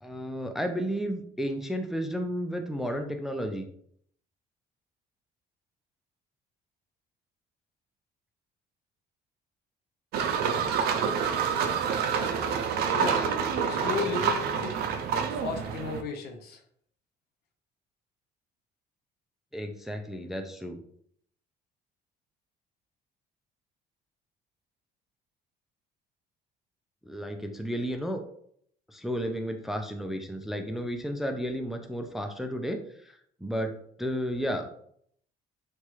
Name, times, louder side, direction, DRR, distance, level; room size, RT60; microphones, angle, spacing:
voice 1, 0.0-3.7 19.5-20.8 27.1-28.2 28.9-33.7 34.0-34.9, equal, ahead, 4 dB, 0.3 m, -33 dB
sound 1, 10.1-16.0, right 6 dB, 70° right, 0.4 m, -27 dB
voice 2, 12.9-13.3 13.7-14.8 15.3-16.6, left 4 dB, 70° left, 6 dB, 0.6 m, -34 dB
3.1 x 2.3 x 3.0 m, 0.66 s
cardioid pair, 110°, 17 cm